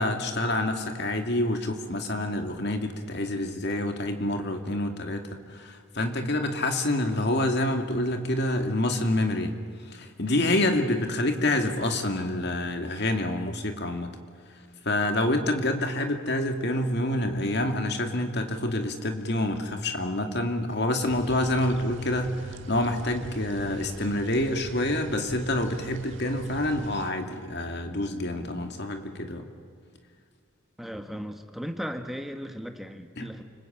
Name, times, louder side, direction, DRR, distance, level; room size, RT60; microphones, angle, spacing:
voice 1, 0.0-5.2 5.5-9.5 9.8-14.1 14.9-29.5 33.2-33.3, left 1 dB, 50° left, 5 dB, 2.4 m, -27 dB
sound 1, 21.1-27.1, right 1 dB, 60° right, 1.6 m, -42 dB
voice 2, 30.8-33.4, equal, ahead, 5 dB, 1.4 m, -36 dB
29.5 x 20.5 x 8.9 m, 2.2 s
head